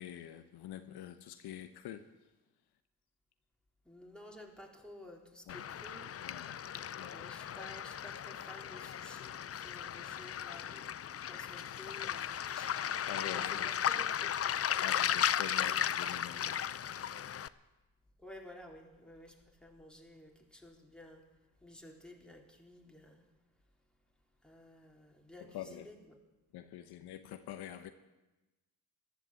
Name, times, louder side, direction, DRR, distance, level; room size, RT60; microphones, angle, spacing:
voice 1, 0.0-2.1 5.5-5.7 6.2-7.1 13.1-13.7 14.8-16.6 25.4-25.9 26.5-27.9, left 11 dB, 75° left, 9 dB, 1.0 m, -46 dB
voice 2, 3.9-6.2 7.1-12.8 13.2-14.5 18.2-21.3 21.6-23.2 24.4-26.2, left 1 dB, ahead, 0 dB, 3.8 m, -53 dB
Waves surf, 5.5-17.5, left 9 dB, 35° left, 0.6 m, -36 dB
14.5 x 12.5 x 7.7 m, 1.1 s
supercardioid pair, 55°, 40 cm